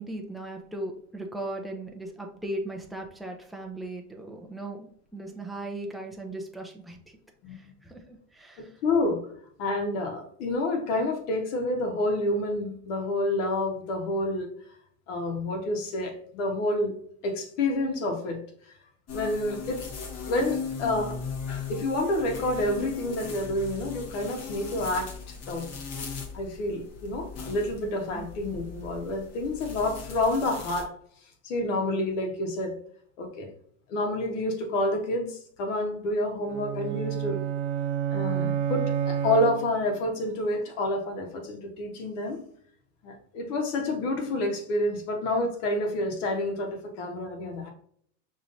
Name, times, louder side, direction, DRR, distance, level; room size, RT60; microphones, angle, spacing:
voice 1, 0.0-4.9 5.1-7.0 7.5-8.7 28.1-28.3 38.4-38.6, right 1 dB, ahead, 1 dB, 0.3 m, -37 dB
voice 2, 8.6-9.2 9.6-14.5 15.1-16.9 17.2-18.4 19.1-19.9 20.3-21.2 21.7-25.7 26.3-30.9 31.4-32.8 33.2-33.5 33.9-37.4 38.1-42.4 43.0-47.7, left 1 dB, 70° left, 3 dB, 1.4 m, -28 dB
sound 1, 19.1-30.8, left 5 dB, 40° left, 1.0 m, -38 dB
sound 2, 36.5-40.0, right 9 dB, 65° right, 0.7 m, -29 dB
5.6 x 3.1 x 2.6 m, 0.62 s
supercardioid pair, 135°, 38 cm